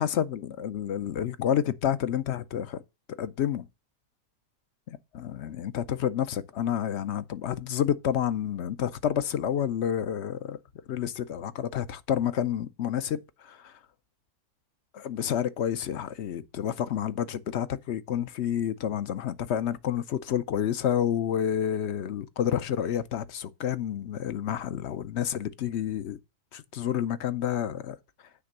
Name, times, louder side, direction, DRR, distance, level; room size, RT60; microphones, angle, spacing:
voice 1, 0.0-2.8 3.2-3.6 4.9-10.6 10.9-13.8 14.9-26.2 26.5-28.0, left 9 dB, 60° left, 0.8 m, -29 dB
9.6 x 3.4 x 6.5 m
omnidirectional pair, 1.4 m